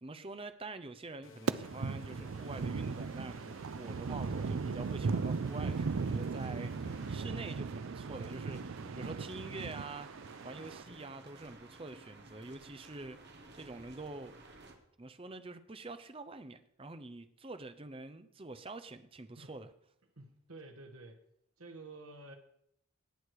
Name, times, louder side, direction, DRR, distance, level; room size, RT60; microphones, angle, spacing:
voice 1, 0.0-13.2 13.5-14.3 15.0-19.7, right 2 dB, 25° right, 0.7 m, -46 dB
sound 1, 1.2-7.2, left 3 dB, 65° left, 1.0 m, -56 dB
sound 2, 1.5-10.8, right 4 dB, 65° right, 0.4 m, -37 dB
sound 3, 5.4-14.7, right 2 dB, 50° right, 1.6 m, -53 dB
voice 2, 20.2-21.2 21.6-22.4, right 2 dB, 80° right, 1.4 m, -50 dB
18.5 x 6.5 x 4.8 m
head